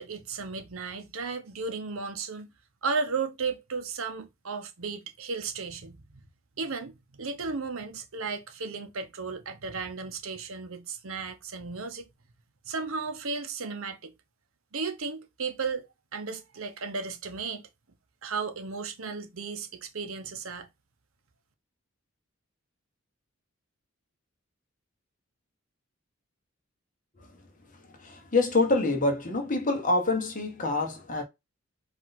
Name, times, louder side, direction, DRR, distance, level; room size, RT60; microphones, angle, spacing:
voice 1, 0.0-2.5 2.8-6.2 6.6-12.1 12.7-14.1 14.7-15.8 16.1-17.6 18.2-20.7, right 4 dB, 75° right, 0.9 m, -34 dB
voice 2, 28.0-31.2, left 2 dB, 35° left, 1.2 m, -26 dB
4.7 x 2.7 x 4.0 m
head